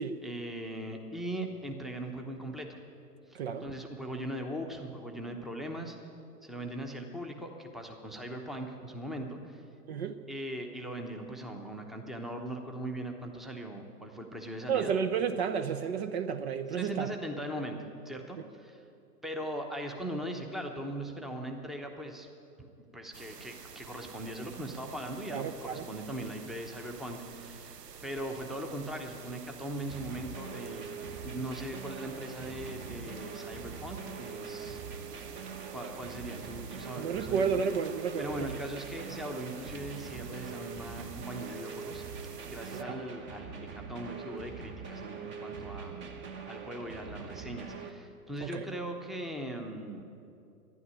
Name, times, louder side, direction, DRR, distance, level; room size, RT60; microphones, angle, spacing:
voice 1, 0.2-2.8 3.3-6.1 6.4-9.6 10.3-14.9 16.8-17.8 18.0-18.9 19.2-22.3 22.6-27.7 28.0-30.9 31.2-34.8 35.7-37.7 38.2-42.0 42.5-50.1, right 1 dB, ahead, 3 dB, 0.9 m, -40 dB
voice 2, 3.3-3.6 9.9-10.2 14.7-17.1 25.3-25.9 37.0-38.5 42.7-43.0 48.4-48.7, right 6 dB, 45° right, 10 dB, 0.7 m, -31 dB
sound 1, 23.1-42.8, right 7 dB, 85° right, 0.8 m, -49 dB
sound 2, 29.9-47.9, right 5 dB, 25° right, 1.1 m, -43 dB
12.0 x 11.0 x 9.9 m, 2.6 s
figure-of-eight pair, 115°, 47 cm